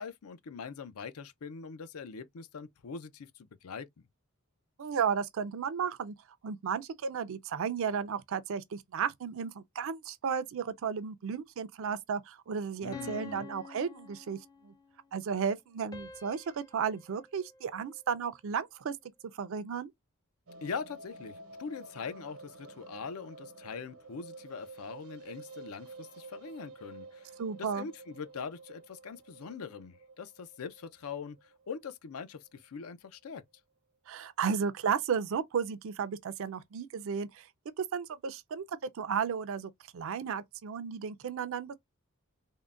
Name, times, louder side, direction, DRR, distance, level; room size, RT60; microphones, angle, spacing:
voice 1, 0.0-4.1 12.8-13.5 20.6-33.4, left 5 dB, 80° left, 0.5 m, -42 dB
voice 2, 4.8-6.1 6.4-14.4 14.6-14.7 15.1-18.9 19.3-19.9 27.4-27.9 34.1-37.5 37.8-41.7, right 6 dB, 65° right, 0.4 m, -34 dB
sound 1, 12.9-14.9 15.9-18.3, left 4 dB, 15° left, 0.4 m, -49 dB
sound 2, 20.5-32.6 32.9-33.0 33.2-33.3 33.6-33.7, right 3 dB, 85° right, 0.9 m, -51 dB
3.6 x 2.1 x 2.4 m
head